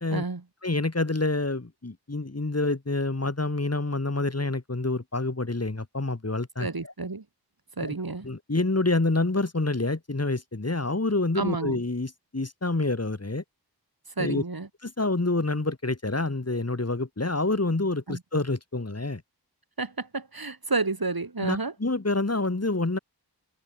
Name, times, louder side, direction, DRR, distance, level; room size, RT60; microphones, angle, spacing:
voice 1, 0.1-0.4 6.6-7.2 7.8-8.2 11.4-11.8 14.2-14.7 18.1-18.2 19.8-21.7, right 3 dB, 60° right, 2.8 m, -30 dB
voice 2, 0.6-6.9 7.8-7.9 8.2-13.4 14.2-14.4 14.8-19.2 21.4-23.0, left 2 dB, 35° left, 2.3 m, -27 dB
wide cardioid pair, 45°, 41 cm